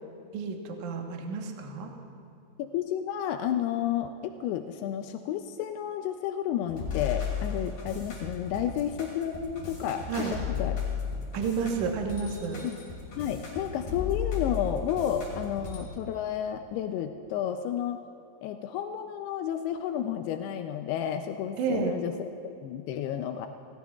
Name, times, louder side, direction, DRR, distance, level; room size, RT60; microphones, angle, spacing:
voice 1, 0.3-1.9 10.1-10.4 11.3-12.6 21.6-21.9, right 5 dB, 70° right, 2 dB, 1.8 m, -31 dB
voice 2, 2.6-10.8 12.6-12.8 13.2-18.0 18.4-23.5, left 10 dB, 90° left, 6 dB, 2.3 m, -31 dB
sound 1, 6.7-15.8, left 6 dB, 55° left, 5.0 m, -34 dB
29.5 x 17.0 x 2.4 m, 2.6 s
omnidirectional pair, 5.2 m